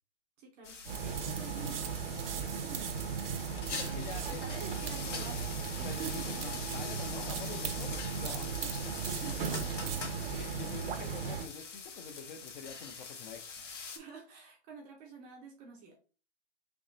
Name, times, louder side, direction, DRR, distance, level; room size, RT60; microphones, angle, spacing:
voice 1, 0.4-1.9 2.3-3.0 3.8-6.3 9.0-10.3 13.9-16.0, right 5 dB, 15° right, 0.5 m, -48 dB
sound 1, 0.6-14.0, left 5 dB, 85° left, 1.3 m, -44 dB
sound 2, 0.8-11.5, right 6 dB, 55° right, 0.7 m, -37 dB
voice 2, 3.7-4.4 5.8-9.0 9.8-13.6, left 6 dB, 40° left, 0.6 m, -47 dB
3.6 x 2.9 x 3.8 m
hypercardioid pair, 155°, 35 cm